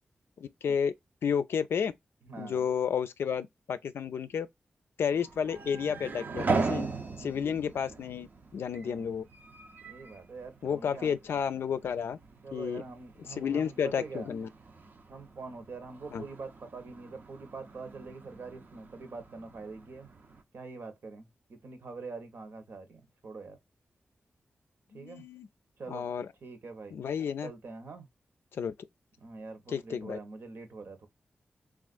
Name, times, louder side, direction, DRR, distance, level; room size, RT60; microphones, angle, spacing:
voice 1, 0.4-0.9 1.2-1.9 2.4-4.5 5.0-6.9 7.2-8.3 8.5-9.2 10.6-12.2 12.5-12.8 13.3-14.5 16.1-16.2 24.9-25.5 25.9-26.3 26.9-27.5 28.5-28.7 29.7-30.2, left 7 dB, 85° left, 0.4 m, -31 dB
voice 2, 2.2-2.7 8.7-9.1 9.8-11.1 12.4-14.3 15.1-20.1 20.5-23.6 24.9-25.3 25.8-26.1 26.4-26.9 27.4-28.1 29.2-31.1, right 4 dB, 70° right, 1.0 m, -44 dB
sound 1, 5.1-20.4, right 4 dB, 50° right, 0.5 m, -39 dB
3.5 x 2.4 x 2.4 m
cardioid pair, 80°, 4 cm